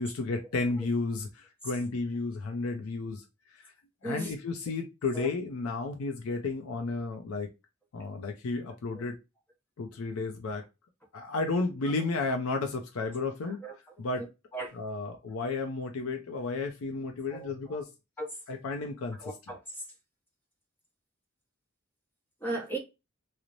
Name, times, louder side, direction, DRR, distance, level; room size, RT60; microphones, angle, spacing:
voice 1, 0.0-3.2 3.6-3.7 4.0-7.5 7.9-9.2 9.8-10.6 11.1-13.6 14.0-14.2 14.7-17.9 18.5-19.3, left 3 dB, 85° left, 0.5 m, -32 dB
voice 2, 4.0-4.3 5.1-5.3 8.9-9.0 13.4-13.7 14.2-14.3 14.5-14.8 17.3-17.8 18.2-18.3 19.2-19.9 22.4-22.8, right 2 dB, 10° left, 0.7 m, -37 dB
3.0 x 2.0 x 2.4 m
head